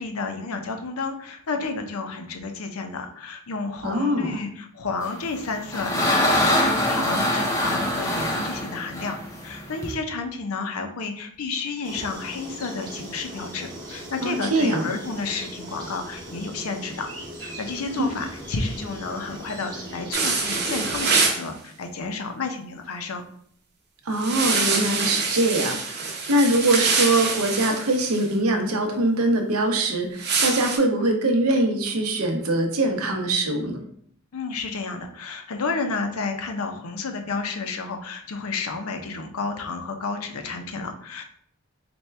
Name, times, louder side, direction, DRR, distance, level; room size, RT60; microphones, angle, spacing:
voice 1, 0.0-9.2 9.4-17.1 17.4-23.2 34.3-41.2, left 4 dB, 80° left, 5 dB, 0.6 m, -31 dB
voice 2, 3.8-4.4 14.2-14.9 18.0-18.1 24.1-33.8, right 1 dB, 80° right, 4 dB, 0.7 m, -23 dB
sound 1, 5.2-9.9, left 1 dB, 15° left, 0.5 m, -24 dB
sound 2, 11.8-21.1, right 1 dB, 20° right, 0.8 m, -39 dB
sound 3, 20.1-21.4 24.2-28.2 30.2-30.8, right 4 dB, 50° right, 0.7 m, -25 dB
4.2 x 2.2 x 3.3 m, 0.63 s
head